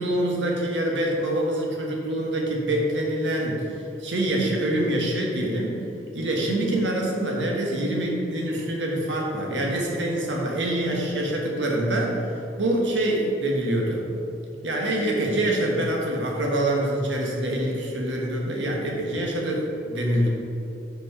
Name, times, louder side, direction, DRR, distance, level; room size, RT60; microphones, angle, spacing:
voice 1, 0.0-5.8 6.1-12.2 12.6-14.0 14.6-20.3, right 1 dB, 85° right, -1 dB, 1.3 m, -25 dB
5.6 x 4.5 x 5.5 m, 2.7 s
head